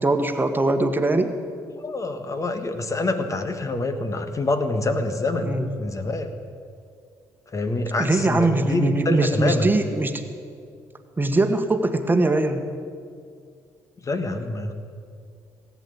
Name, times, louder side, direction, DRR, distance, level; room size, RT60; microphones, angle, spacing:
voice 1, 0.0-1.3 5.4-5.7 8.0-10.2 11.2-12.7, right 2 dB, 20° right, 7 dB, 1.5 m, -21 dB
voice 2, 1.8-6.3 7.5-9.7 14.0-14.7, left 2 dB, 35° left, 8 dB, 1.6 m, -26 dB
18.5 x 8.6 x 8.8 m, 2.2 s
hypercardioid pair, 55°, 9 cm